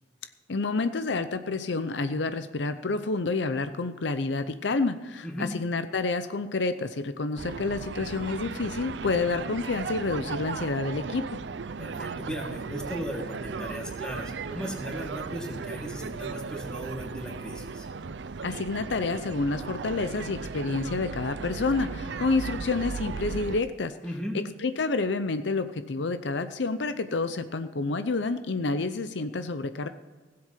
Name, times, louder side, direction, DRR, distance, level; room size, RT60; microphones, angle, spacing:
voice 1, 0.5-11.2 18.4-23.9 24.3-29.9, left 3 dB, 75° left, 10 dB, 0.7 m, -29 dB
voice 2, 5.2-5.6 11.8-17.9 24.0-24.4, equal, 5° left, 0 dB, 2.0 m, -36 dB
sound 1, 7.4-23.6, right 4 dB, 75° right, 0.5 m, -36 dB
16.5 x 7.8 x 5.8 m, 1.3 s
head